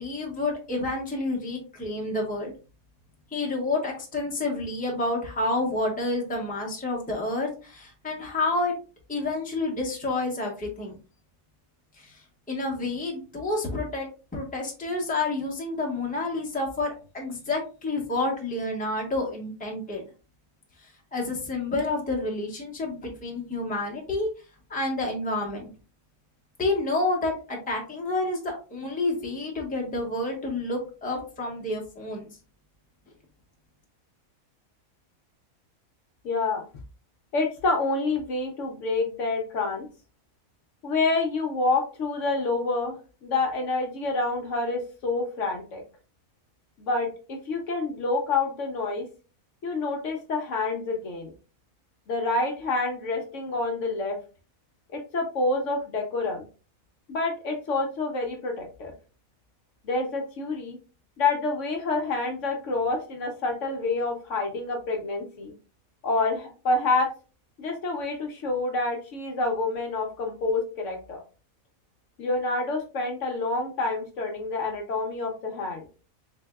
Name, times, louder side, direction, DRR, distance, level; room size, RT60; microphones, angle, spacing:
voice 1, 0.0-2.5 3.3-8.7 9.1-10.9 12.0-12.2 12.5-20.0 20.8-24.3 24.7-25.7 26.6-32.3, left 2 dB, 5° left, -1 dB, 0.8 m, -29 dB
voice 2, 36.2-36.6 37.3-39.9 40.8-43.0 43.2-45.8 46.8-49.0 49.6-51.3 52.1-54.2 54.9-56.5 57.1-58.9 59.8-60.8 61.2-65.5 66.0-67.1 67.6-71.2 72.2-75.9, left 3 dB, 65° left, 2 dB, 1.0 m, -27 dB
3.8 x 3.4 x 2.2 m, 0.35 s
omnidirectional pair, 1.5 m